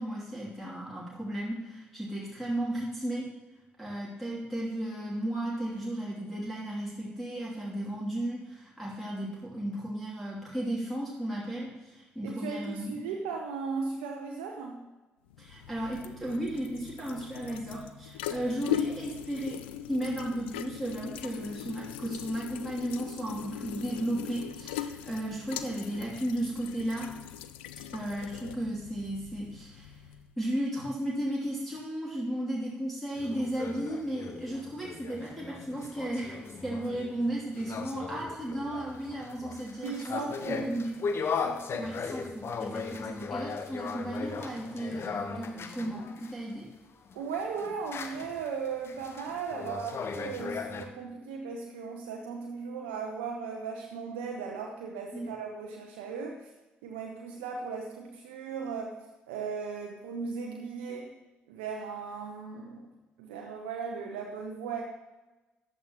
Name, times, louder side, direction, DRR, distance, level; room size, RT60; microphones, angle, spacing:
voice 1, 0.0-3.3 3.8-12.9 15.4-19.6 19.9-27.1 27.9-30.0 30.4-40.2 40.5-40.9 41.7-46.7 55.1-55.3, right 1 dB, ahead, -5 dB, 2.8 m, -34 dB
voice 2, 12.2-14.9 37.8-38.0 39.8-40.8 41.3-41.9 47.1-56.5 56.8-59.0 59.3-61.1 61.5-62.9 63.2-64.8, right 5 dB, 70° right, 1 dB, 0.8 m, -37 dB
sound 1, 15.3-30.3, left 11 dB, 75° left, 0.4 m, -40 dB
sound 2, 33.2-46.4 47.1-50.8, left 5 dB, 45° left, 0.9 m, -38 dB
14.0 x 10.0 x 3.0 m, 1.1 s
figure-of-eight pair, 45°, 6 cm